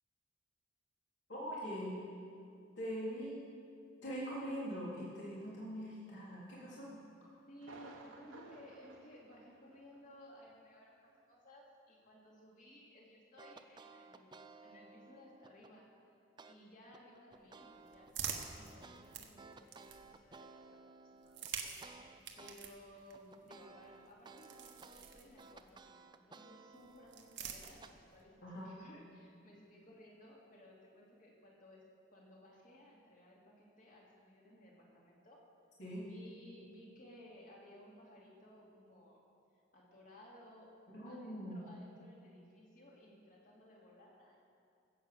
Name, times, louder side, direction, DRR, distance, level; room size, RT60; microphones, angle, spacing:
voice 1, 1.3-1.9 2.8-3.4 4.0-7.0 28.4-28.7 35.8-36.1 40.9-41.6, equal, 65° left, -8 dB, 3.6 m, -42 dB
voice 2, 7.5-14.3 14.6-15.9 16.5-21.7 22.3-31.8 32.1-35.4 36.0-39.2 39.7-40.7 41.0-44.4, equal, 40° left, -3 dB, 2.7 m, -59 dB
Thunder, 7.6-10.2 10.4-10.5 11.1-11.2, right 2 dB, 85° right, 1.4 m, -56 dB
sound 1, 13.4-15.7 16.4-16.6 16.9-22.6 22.9-27.9, right 4 dB, 20° right, 0.5 m, -57 dB
sound 2, 17.3-20.3 21.2-25.8 26.7-28.2, right 7 dB, 65° right, 1.2 m, -48 dB
15.5 x 8.2 x 6.9 m, 2.4 s
head